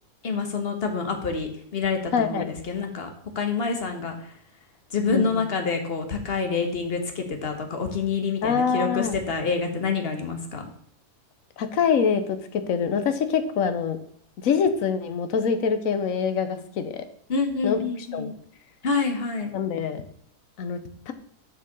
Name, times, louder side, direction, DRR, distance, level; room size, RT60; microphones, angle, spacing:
voice 1, 0.2-3.1 3.3-4.3 4.9-10.6 17.3-18.3 18.8-19.5, left 4 dB, 40° left, 5 dB, 1.4 m, -27 dB
voice 2, 2.1-2.5 5.1-5.4 8.4-9.2 11.6-14.0 14.4-17.0 17.6-17.8 18.1-18.3 19.5-20.0 20.6-20.8 21.1-21.2, left 6 dB, 60° left, 9 dB, 1.2 m, -24 dB
7.0 x 5.8 x 5.3 m, 0.65 s
omnidirectional pair, 1.7 m